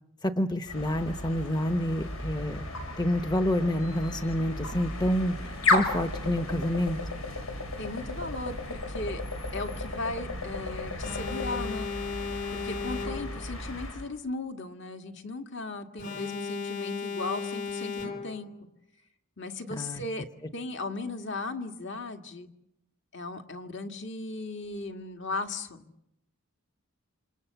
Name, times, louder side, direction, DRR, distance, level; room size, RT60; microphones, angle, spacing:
voice 1, 0.2-2.7 3.0-7.0 19.7-20.0, equal, 20° left, 7 dB, 0.9 m, -28 dB
sound 1, 0.7-14.1, left 2 dB, 75° left, 7.2 m, -34 dB
voice 2, 7.8-9.2 9.5-11.9 12.5-18.5 19.4-20.3 20.5-22.5 23.1-25.9, left 3 dB, 55° left, 5 dB, 2.2 m, -37 dB
Alarm, 11.0-13.5 16.0-18.5, left 4 dB, 40° left, 3.5 m, -35 dB
27.5 x 27.5 x 6.9 m, 0.82 s
head